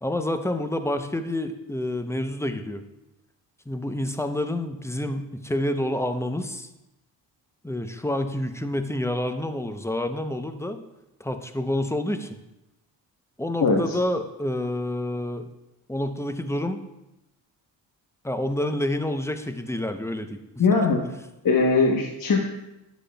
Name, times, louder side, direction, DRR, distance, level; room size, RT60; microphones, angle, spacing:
voice 1, 0.0-2.8 3.7-6.7 7.6-10.8 11.2-12.3 13.4-15.5 15.9-16.8 18.2-20.4, left 1 dB, 5° left, 8 dB, 0.7 m, -28 dB
voice 2, 13.6-14.0 20.6-21.0 21.4-22.4, left 4 dB, 45° left, 1 dB, 1.1 m, -20 dB
9.9 x 7.2 x 2.3 m, 0.93 s
supercardioid pair, 45°, 47 cm